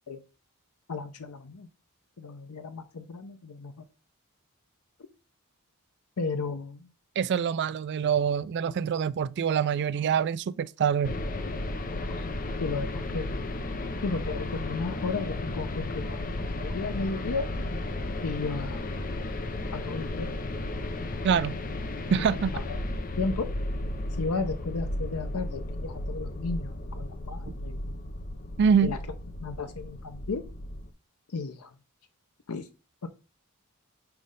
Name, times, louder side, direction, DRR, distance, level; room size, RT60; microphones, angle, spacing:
voice 1, 0.9-1.7 2.2-3.8 6.2-6.9 12.1-12.3 12.6-13.5 14.0-17.4 18.2-19.2 19.7-20.4 22.3-22.8 23.2-23.5 24.2-28.0 28.8-29.0 29.4-30.4 31.3-31.7 32.5-32.7 33.0-33.1, left 4 dB, 80° left, 0.6 m, -34 dB
voice 2, 7.2-11.1 21.2-21.6 22.1-22.5 28.6-28.9, right 7 dB, 50° right, 0.3 m, -25 dB
sound 1, 11.0-30.9, left 1 dB, 40° left, 0.6 m, -34 dB
5.8 x 3.2 x 5.2 m
head